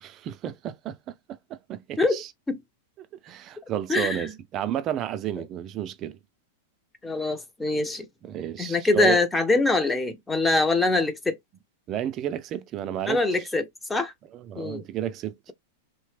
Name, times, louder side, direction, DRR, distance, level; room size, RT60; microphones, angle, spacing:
voice 1, 0.0-2.3 3.0-6.2 8.2-9.2 11.9-13.2 14.3-15.4, right 10 dB, 35° right, 0.4 m, -32 dB
voice 2, 2.0-2.6 3.9-4.3 7.0-8.1 8.6-11.4 13.1-14.1 14.6-14.8, left 2 dB, 10° left, 0.5 m, -24 dB
2.7 x 2.1 x 3.2 m
hypercardioid pair, 105°, 0 cm